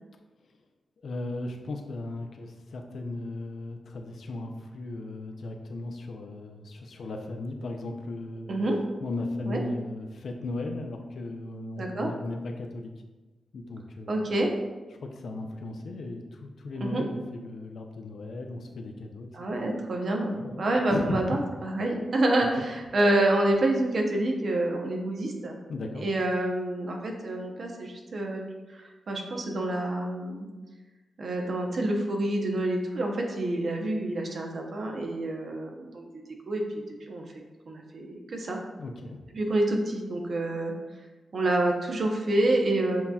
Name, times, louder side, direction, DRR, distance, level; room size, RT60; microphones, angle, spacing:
voice 1, 1.0-8.5 9.0-12.9 13.5-14.2 15.0-19.3 19.6-19.7 20.3-20.6 20.9-21.4 22.6-22.7 25.7-26.0 38.8-39.2, left 2 dB, 70° left, 3 dB, 0.5 m, -36 dB
voice 2, 11.8-12.1 14.1-14.5 16.8-17.0 19.3-25.6 25.9-28.4 28.7-30.5 31.2-36.0 36.5-36.6 37.1-37.2 37.7-38.6 39.3-40.7 41.3-43.0, right 1 dB, 60° right, 2 dB, 0.8 m, -27 dB
7.4 x 2.8 x 2.3 m, 1.2 s
cardioid pair, 80°, 0 cm